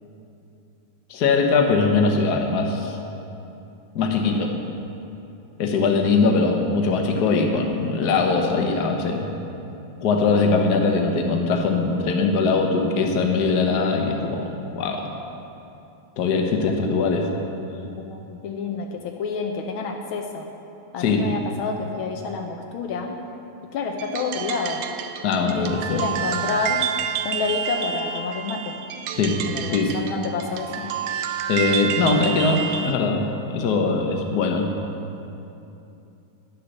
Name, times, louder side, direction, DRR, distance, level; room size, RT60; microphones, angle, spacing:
voice 1, 1.1-3.0 3.9-4.5 5.6-9.3 10.0-15.1 16.2-17.3 17.8-17.9 21.0-21.4 25.2-26.1 29.2-29.4 29.7-30.0 31.5-33.3 33.5-34.7, left 4 dB, 55° left, 2 dB, 1.4 m, -21 dB
voice 2, 18.0-20.5 20.9-23.2 23.7-24.9 25.3-26.9 27.2-28.8 29.5-30.9, left 4 dB, 75° left, 3 dB, 1.5 m, -29 dB
sound 1, 24.0-33.0, right 8 dB, 75° right, 1.0 m, -29 dB
11.0 x 7.0 x 6.5 m, 2.8 s
omnidirectional pair, 2.3 m